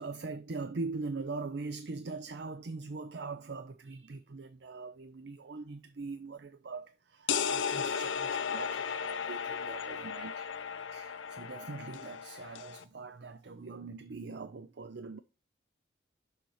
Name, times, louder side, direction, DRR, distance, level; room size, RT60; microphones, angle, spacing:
voice 1, 0.0-10.5 10.9-15.2, right 3 dB, 60° right, 0.5 m, -42 dB
sound 1, 7.3-12.8, left 7 dB, 80° left, 0.6 m, -35 dB
6.6 x 5.6 x 4.8 m
head